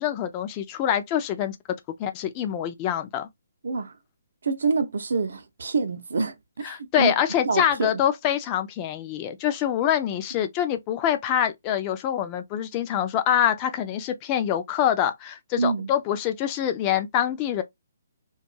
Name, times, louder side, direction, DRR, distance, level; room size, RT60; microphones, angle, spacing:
voice 1, 0.0-1.6 2.0-3.3 6.6-17.6, left 10 dB, 25° left, 0.4 m, -25 dB
voice 2, 3.6-3.9 4.4-6.4 6.6-7.1 7.4-8.0 15.6-15.9, right 4 dB, 60° right, 0.6 m, -26 dB
2.5 x 2.3 x 2.7 m
figure-of-eight pair, 135°, 0 cm